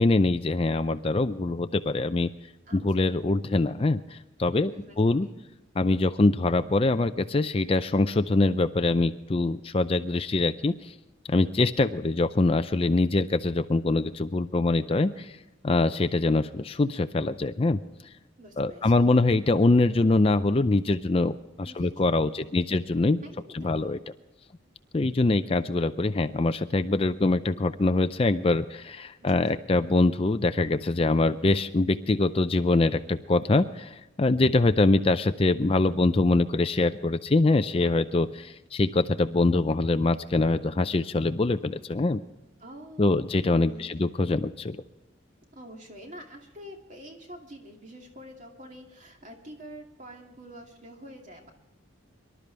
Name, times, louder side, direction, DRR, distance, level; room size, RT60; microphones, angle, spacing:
voice 1, 0.0-2.3 2.7-5.3 5.8-10.9 11.3-15.4 15.6-17.8 18.6-23.2 23.5-24.0 24.9-42.2 43.0-44.8, left 2 dB, 30° left, 11 dB, 0.4 m, -24 dB
voice 2, 2.7-3.2 4.6-5.4 18.4-19.0 21.6-22.8 23.2-23.9 29.2-29.6 42.6-43.3 43.7-44.2 45.5-51.5, equal, 40° right, 1 dB, 2.5 m, -47 dB
24.0 x 12.0 x 3.4 m, 1.0 s
head